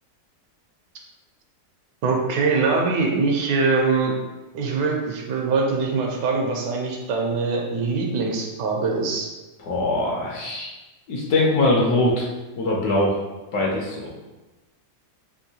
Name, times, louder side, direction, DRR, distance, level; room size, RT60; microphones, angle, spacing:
voice 1, 2.0-4.1 4.5-9.3, right 4 dB, 75° right, 0 dB, 1.2 m, -23 dB
voice 2, 9.6-10.7 11.1-12.3 12.6-13.2 13.5-14.1, left 2 dB, 70° left, -3 dB, 1.0 m, -22 dB
3.6 x 2.5 x 2.7 m, 1.1 s
omnidirectional pair, 1.9 m